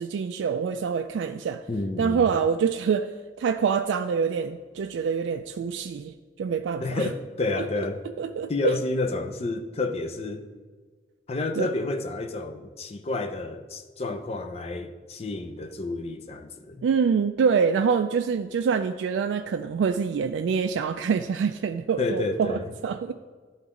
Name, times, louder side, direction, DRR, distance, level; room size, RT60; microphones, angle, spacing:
voice 1, 0.0-1.6 2.0-3.1 3.4-7.1 8.2-8.7 11.6-11.7 16.8-23.1, right 6 dB, 85° right, 7 dB, 0.3 m, -25 dB
voice 2, 1.7-2.3 6.8-8.0 8.5-10.4 11.3-16.9 22.0-22.7, left 2 dB, 35° left, 6 dB, 0.5 m, -30 dB
11.5 x 3.9 x 3.7 m, 1.5 s
head